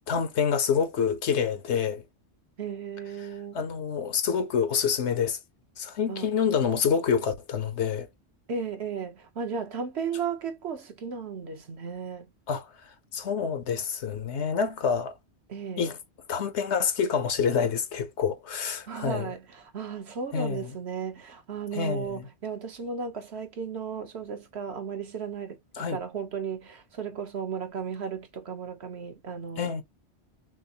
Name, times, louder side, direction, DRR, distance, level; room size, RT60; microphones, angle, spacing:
voice 1, 0.1-2.0 3.5-5.4 5.8-8.1 12.5-12.7 13.1-15.1 15.8-16.0 16.3-19.3 20.3-20.7 21.7-22.3 25.7-26.0 29.6-29.8, left 6 dB, 80° left, 1.2 m, -27 dB
voice 2, 2.6-3.6 6.1-6.3 8.5-12.3 15.5-15.9 18.9-25.6 25.9-29.8, right 6 dB, 70° right, 1.2 m, -35 dB
6.1 x 2.1 x 2.8 m
omnidirectional pair, 1.1 m